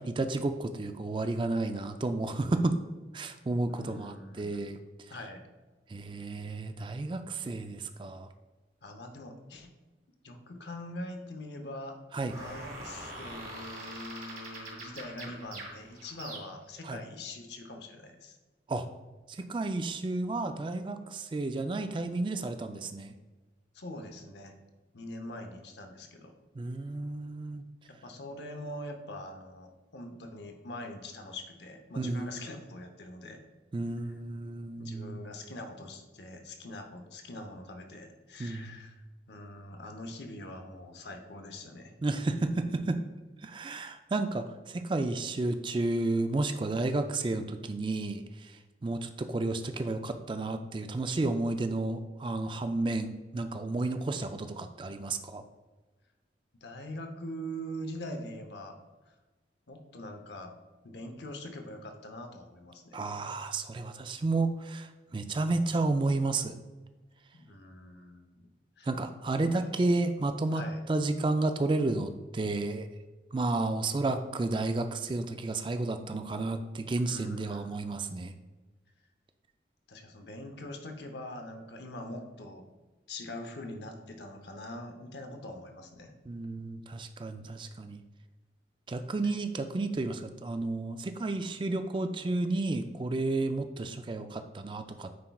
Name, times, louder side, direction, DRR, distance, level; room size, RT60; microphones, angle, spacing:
voice 1, 0.2-2.7 3.1-5.1 5.9-8.3 12.1-12.4 16.8-17.0 18.7-18.9 19.3-23.1 26.5-27.6 32.0-32.4 33.7-35.3 38.4-38.8 42.0-43.0 43.4-55.4 62.9-66.5 68.8-72.9 73.3-78.3 86.3-88.0 88.9-95.1, right 2 dB, 25° right, 8 dB, 0.3 m, -32 dB
voice 2, 3.7-4.6 5.1-5.5 8.8-9.7 10.2-12.0 12.2-18.4 23.7-24.6 24.9-26.4 27.9-33.4 34.8-39.0 39.3-41.9 56.6-58.8 59.1-59.2 59.7-60.6 60.8-63.0 67.3-68.5 68.8-68.9 69.3-69.7 70.5-70.8 76.9-77.8 79.9-82.7 83.1-86.1, left 1 dB, 75° left, 5 dB, 0.8 m, -43 dB
sound 1, 12.3-16.8, right 1 dB, 50° right, 1.9 m, -43 dB
9.4 x 4.5 x 2.3 m, 1.2 s
head